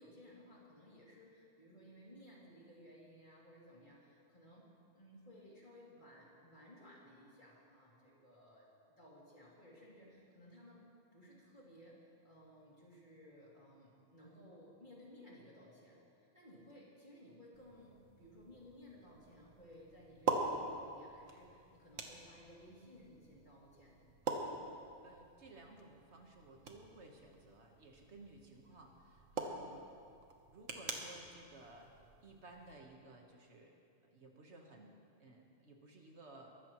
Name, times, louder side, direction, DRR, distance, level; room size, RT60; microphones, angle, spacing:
voice 1, 0.0-4.7 4.9-8.7 9.0-10.9 11.1-24.0 29.3-29.6, left 1 dB, 40° left, -5 dB, 2.9 m, -59 dB
sound 1, 17.5-32.7, right 3 dB, 85° right, 1.5 m, -45 dB
voice 2, 24.7-29.8 30.5-31.9 32.2-33.8 34.0-36.6, right 2 dB, 60° right, 1 dB, 1.6 m, -57 dB
22.0 x 14.0 x 3.1 m, 2.4 s
omnidirectional pair, 1.3 m